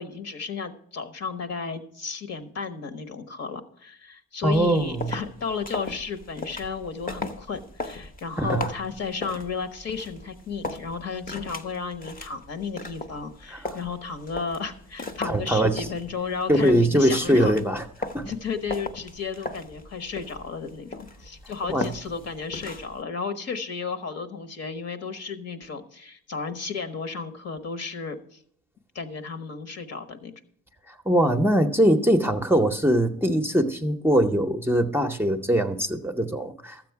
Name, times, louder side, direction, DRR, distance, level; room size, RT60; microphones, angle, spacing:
voice 1, 0.0-17.6 18.3-28.4 28.9-30.3, left 5 dB, 55° left, 10 dB, 1.2 m, -33 dB
voice 2, 4.4-5.1 8.4-8.6 13.5-13.8 15.2-15.9 16.5-17.8 18.1-18.3 21.7-21.9 30.9-36.8, right 1 dB, 5° right, 5 dB, 0.7 m, -22 dB
sound 1, 4.5-23.0, left 3 dB, 30° left, 0.8 m, -38 dB
13.0 x 7.8 x 4.6 m, 0.67 s
cardioid pair, 90°, 30 cm